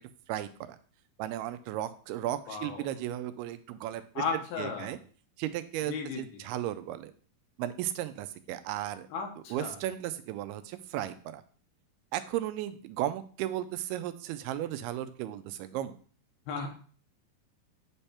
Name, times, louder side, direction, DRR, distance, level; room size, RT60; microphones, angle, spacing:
voice 1, 0.3-0.8 1.2-4.2 4.6-5.0 5.4-7.1 7.6-9.1 9.5-11.4 12.1-16.0, right 13 dB, 85° right, 12 dB, 2.5 m, -35 dB
voice 2, 2.5-2.9 4.2-4.9 5.9-6.2 9.1-9.8 16.5-16.7, left 5 dB, 80° left, 3 dB, 3.0 m, -35 dB
8.8 x 3.4 x 4.2 m, 0.43 s
omnidirectional pair, 4.5 m